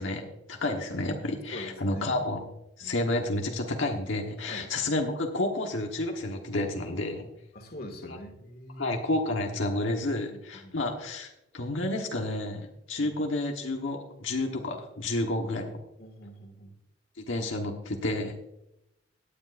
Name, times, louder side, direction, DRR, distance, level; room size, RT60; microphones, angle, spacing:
voice 1, 0.0-2.4 2.8-7.3 8.0-8.2 8.8-15.7 17.3-18.3, left 2 dB, 90° left, 2 dB, 1.3 m, -30 dB
voice 2, 1.5-2.4 2.8-3.0 4.5-4.7 7.5-9.0 10.3-10.7 13.0-13.1 16.0-16.8, equal, 55° left, 4 dB, 2.1 m, -44 dB
17.0 x 9.9 x 2.6 m, 0.87 s
head